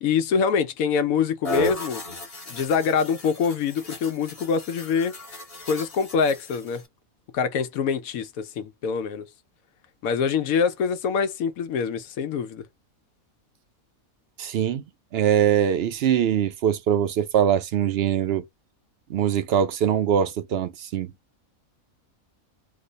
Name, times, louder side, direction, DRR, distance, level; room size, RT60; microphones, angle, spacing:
voice 1, 0.0-2.0 2.5-5.1 5.7-6.8 7.3-9.2 10.0-12.6, left 6 dB, 90° left, 1.1 m, -25 dB
sound 1, 1.4-6.9, left 1 dB, 30° left, 1.0 m, -35 dB
voice 2, 14.4-14.8 15.1-18.4 19.1-21.1, right 9 dB, 65° right, 0.6 m, -22 dB
3.1 x 2.1 x 3.8 m
omnidirectional pair, 1.4 m